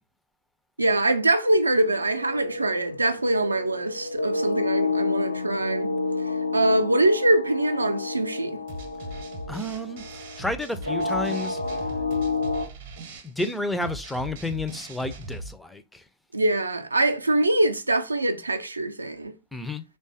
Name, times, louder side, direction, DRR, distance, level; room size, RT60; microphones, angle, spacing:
voice 1, 0.8-5.9 6.5-8.6 16.3-19.3, right 1 dB, 80° right, 0.3 m, -23 dB
sound 1, 1.8-12.7, left 3 dB, 80° left, 0.3 m, -30 dB
sound 2, 8.7-15.5, right 2 dB, 55° right, 0.7 m, -39 dB
voice 2, 9.5-11.6 13.2-16.0 19.5-19.8, left 2 dB, 5° left, 0.4 m, -31 dB
3.1 x 2.2 x 2.7 m
figure-of-eight pair, 90°, 0 cm